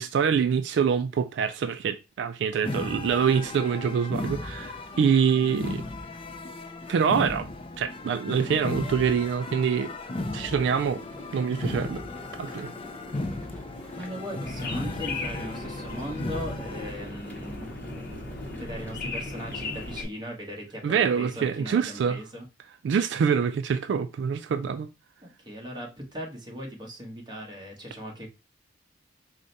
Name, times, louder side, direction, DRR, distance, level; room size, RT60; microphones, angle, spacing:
voice 1, 0.0-5.8 6.9-7.5 7.8-9.9 10.3-11.0 11.3-12.0 12.4-12.7 20.8-22.2 22.8-24.9, right 7 dB, 70° right, 0.3 m, -25 dB
sound 1, 2.6-16.9, left 2 dB, 30° left, 0.4 m, -36 dB
sound 2, 10.4-20.1, left 1 dB, 10° left, 0.9 m, -44 dB
voice 2, 14.0-17.7 18.4-22.5 25.2-28.3, equal, 25° right, 1.1 m, -38 dB
sound 3, 14.4-20.0, left 2 dB, 55° left, 0.8 m, -37 dB
4.9 x 2.2 x 3.9 m
head